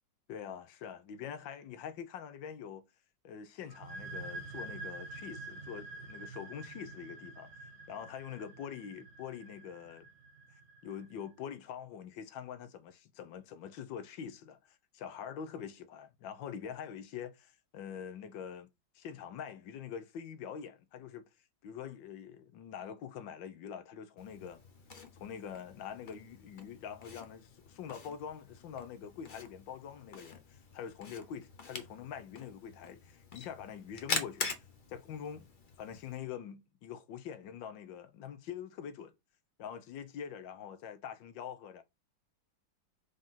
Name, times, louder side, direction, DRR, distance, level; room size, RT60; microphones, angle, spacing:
voice 1, 0.3-2.9 3.2-7.5 7.9-10.1 10.8-18.7 18.9-21.3 21.6-24.6 25.1-34.6 34.9-35.5 35.8-39.1 39.6-41.8, left 8 dB, 75° left, 1.6 m, -44 dB
sound 1, 3.7-11.1, right 2 dB, 45° right, 1.1 m, -47 dB
Camera, 24.2-36.2, left 4 dB, 35° left, 0.9 m, -44 dB
5.0 x 3.9 x 5.7 m
omnidirectional pair, 2.1 m